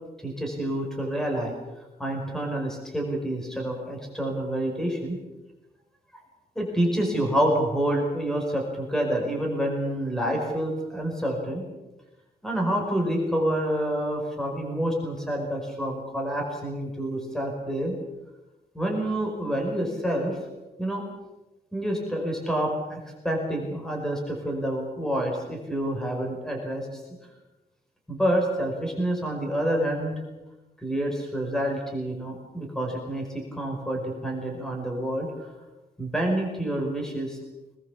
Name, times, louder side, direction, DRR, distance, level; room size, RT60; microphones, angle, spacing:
voice 1, 0.2-1.5 2.0-5.2 6.5-11.6 12.4-18.0 18.7-20.4 20.8-21.0 21.7-27.0 28.1-30.1 30.8-35.5 36.0-37.4, right 1 dB, 5° left, 1 dB, 5.0 m, -28 dB
24.5 x 20.5 x 7.2 m, 1.1 s
wide cardioid pair, 180°, 16 cm